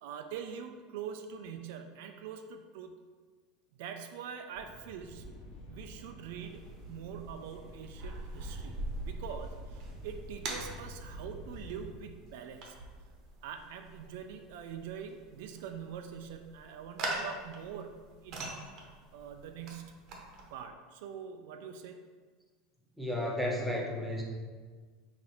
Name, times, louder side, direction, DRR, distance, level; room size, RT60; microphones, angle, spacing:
voice 1, 0.0-2.9 3.8-5.4 5.7-12.8 13.4-17.9 18.2-18.6 19.1-20.0 20.5-22.0, right 7 dB, 75° right, 6 dB, 0.3 m, -44 dB
sound 1, 4.5-11.9, left 1 dB, 55° left, 0.8 m, -49 dB
sound 2, 6.4-20.5, right 2 dB, 50° right, 0.8 m, -43 dB
voice 2, 23.0-24.2, left 1 dB, ahead, -2 dB, 0.7 m, -33 dB
4.0 x 2.5 x 4.3 m, 1.5 s
supercardioid pair, 140°, 0 cm